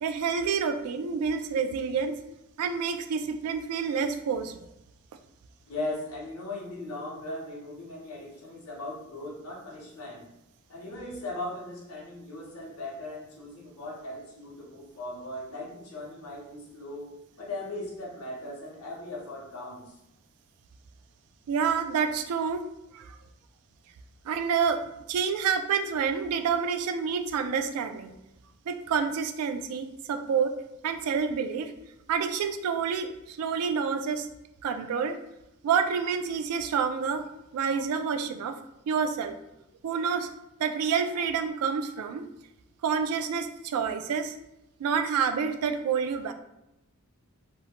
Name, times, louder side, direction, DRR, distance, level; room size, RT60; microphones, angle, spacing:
voice 1, 0.0-2.2 2.6-4.6 21.5-22.7 22.9-23.2 24.3-24.8 25.1-28.1 28.7-30.5 30.8-31.7 32.1-34.3 34.6-35.2 35.6-38.6 38.9-39.4 39.8-40.3 40.6-42.3 42.8-44.4 44.8-46.3, right 6 dB, 85° right, 8 dB, 0.3 m, -28 dB
voice 2, 5.7-10.2 10.7-19.9, left 2 dB, 75° left, -2 dB, 0.8 m, -38 dB
2.7 x 2.1 x 2.8 m, 0.89 s
head